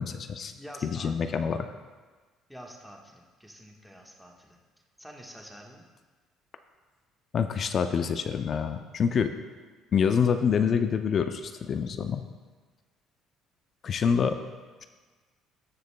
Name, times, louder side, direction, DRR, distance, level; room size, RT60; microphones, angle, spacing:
voice 1, 0.0-0.5 0.8-1.7 7.3-9.3 9.9-12.2 13.8-14.4, left 6 dB, 45° left, 8 dB, 0.5 m, -26 dB
voice 2, 0.6-1.4 2.5-4.6 5.0-5.8, equal, ahead, 0 dB, 1.3 m, -47 dB
16.0 x 6.8 x 2.2 m, 1.4 s
supercardioid pair, 90°, 0 cm